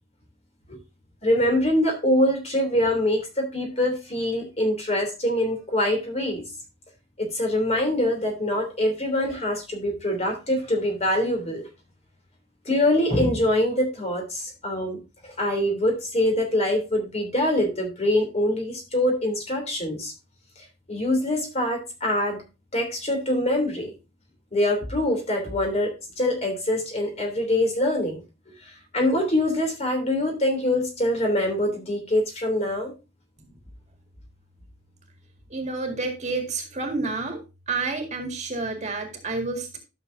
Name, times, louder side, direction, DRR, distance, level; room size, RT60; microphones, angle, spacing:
voice 1, 1.2-6.4 7.2-11.7 12.6-20.1 20.9-22.4 22.7-23.9 24.5-28.2 28.6-32.9, left 1 dB, 35° left, 3 dB, 3.1 m, -24 dB
voice 2, 35.5-37.4 37.7-39.8, right 3 dB, 40° right, 3 dB, 2.0 m, -29 dB
12.0 x 6.7 x 2.6 m, 0.27 s
head